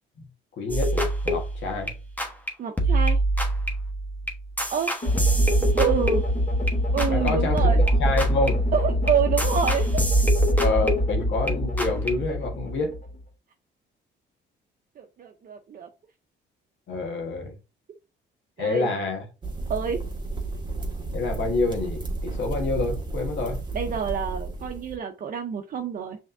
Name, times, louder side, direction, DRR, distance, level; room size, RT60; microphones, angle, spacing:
voice 1, 0.6-1.9 7.1-7.6 8.0-8.6 10.6-13.0 16.9-17.6 18.6-19.3 21.1-23.6, left 3 dB, 70° left, 1.4 m, -27 dB
sound 1, 0.7-2.5 2.8-7.3 7.6-11.5 11.8-12.1, right 1 dB, 10° left, 1.2 m, -25 dB
voice 2, 2.6-3.2 4.7-4.9 5.8-6.2 6.9-7.8 8.7-9.9 15.0-15.9 18.6-18.9 19.7-20.0 23.7-26.2, right 7 dB, 45° right, 0.6 m, -27 dB
sound 2, 5.0-13.2, left 1 dB, 35° left, 2.4 m, -25 dB
sound 3, 19.4-25.0, right 3 dB, 25° right, 1.3 m, -32 dB
5.6 x 3.5 x 2.6 m
cardioid pair, 90°, 20 cm